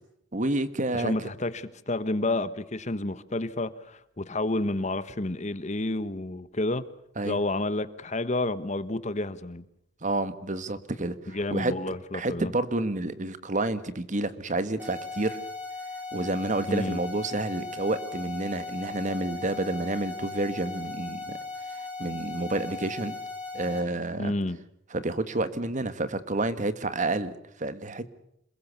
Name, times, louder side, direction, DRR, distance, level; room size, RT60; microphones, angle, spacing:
voice 1, 0.3-1.3 7.2-7.4 10.0-11.7 12.1-15.4 16.1-21.4 21.7-23.2 23.5-24.3 24.9-28.1, right 2 dB, 45° right, 13 dB, 1.6 m, -29 dB
voice 2, 0.9-6.8 7.2-9.6 11.3-12.5 16.7-17.0 24.2-24.6, left 2 dB, 40° left, 14 dB, 1.3 m, -30 dB
sound 1, 14.8-23.8, left 3 dB, 10° right, 7.3 m, -38 dB
27.5 x 21.5 x 6.9 m, 0.73 s
head